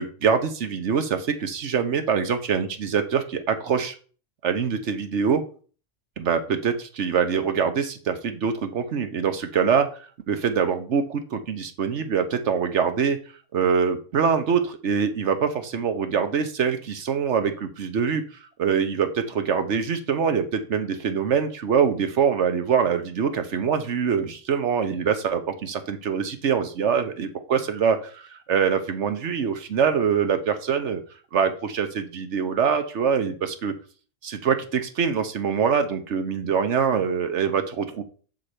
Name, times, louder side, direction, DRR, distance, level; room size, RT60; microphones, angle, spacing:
voice 1, 0.0-3.9 4.4-5.4 6.2-10.0 10.3-13.2 13.5-18.2 18.6-31.0 31.3-33.7 34.2-38.0, right 6 dB, 65° right, 8 dB, 1.2 m, -24 dB
6.7 x 6.4 x 4.3 m, 0.40 s
omnidirectional pair, 1.3 m